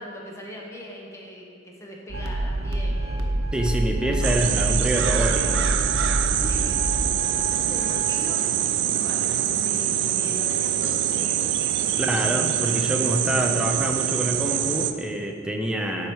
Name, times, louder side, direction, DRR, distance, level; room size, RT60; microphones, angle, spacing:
voice 1, 0.0-3.4 4.1-4.4 6.3-6.8 7.6-11.6 11.9-12.2, equal, 15° left, -2 dB, 0.9 m, -40 dB
sound 1, 2.1-8.3, right 1 dB, 85° right, 0.7 m, -27 dB
voice 2, 3.5-5.7 12.0-16.1, right 1 dB, 5° right, 2 dB, 0.5 m, -26 dB
sound 2, 4.2-14.9, right 10 dB, 60° right, 0.3 m, -24 dB
7.4 x 4.8 x 4.6 m, 2.4 s
head